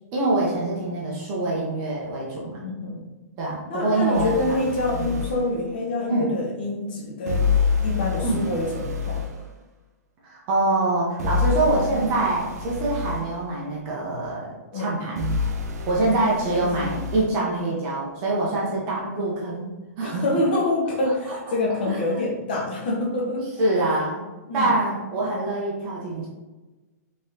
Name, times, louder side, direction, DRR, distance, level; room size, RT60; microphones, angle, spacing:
voice 1, 0.1-2.6 3.4-4.6 4.9-5.1 6.1-6.3 8.2-8.4 10.2-15.3 15.9-19.7 20.0-20.2 21.3-21.4 21.9-22.0 23.6-24.3 24.5-26.3, right 2 dB, 20° right, -4 dB, 0.6 m, -25 dB
voice 2, 2.6-3.0 3.7-9.3 14.7-14.9 16.6-17.0 20.0-23.6 24.5-24.7, left 2 dB, 35° left, -1 dB, 0.8 m, -26 dB
sound 1, 4.1-5.4 7.3-9.4 11.2-13.3 15.2-17.3, left 4 dB, 75° right, 0.6 m, -27 dB
3.6 x 3.5 x 2.7 m, 1.2 s
hypercardioid pair, 180°, 9 cm